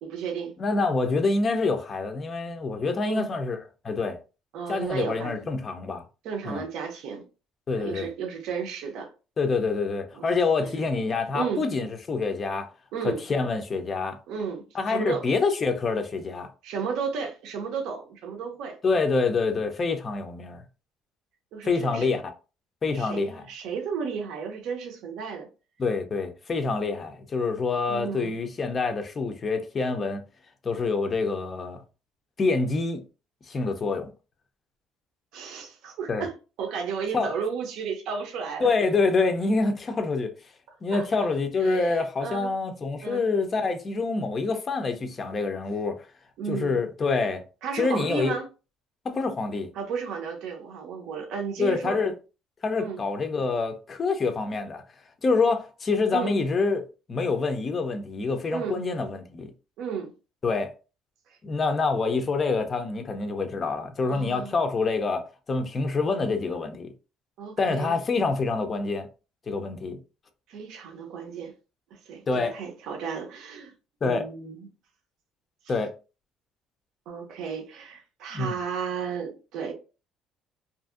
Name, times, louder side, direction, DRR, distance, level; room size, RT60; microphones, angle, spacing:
voice 1, 0.0-0.5 3.1-3.3 4.5-5.5 6.2-7.2 7.7-9.1 10.1-10.7 11.3-11.6 12.9-13.2 14.3-15.2 16.6-18.8 21.5-22.2 22.9-25.5 27.9-28.4 35.3-38.7 40.9-41.3 41.6-42.5 43.0-43.2 46.4-46.8 47.6-48.5 49.7-52.0 52.8-53.0 56.1-56.4 58.5-58.8 59.8-60.1 61.3-61.4 64.1-64.5 67.4-68.0 70.5-71.5 71.9-73.7 74.0-74.7 77.1-79.7, right 6 dB, 70° right, 0.6 m, -33 dB
voice 2, 0.6-3.6 3.8-4.2 4.7-6.0 6.4-6.6 7.7-8.1 9.4-12.7 13.0-14.2 14.7-16.5 18.8-20.6 21.6-22.2 22.8-23.4 25.8-30.2 30.6-31.8 32.4-33.0 33.5-34.1 36.1-36.2 37.1-37.3 38.6-40.3 40.8-46.1 46.5-47.4 47.8-48.3 49.0-49.7 51.6-52.1 52.6-54.8 55.2-59.5 60.4-60.7 61.4-66.9 67.6-69.1 69.5-70.0 72.3-72.5 74.0-74.2 75.7-75.9 78.3-78.5, left 4 dB, 25° left, 0.4 m, -26 dB
2.6 x 2.5 x 2.4 m
cardioid pair, 155°, 0 cm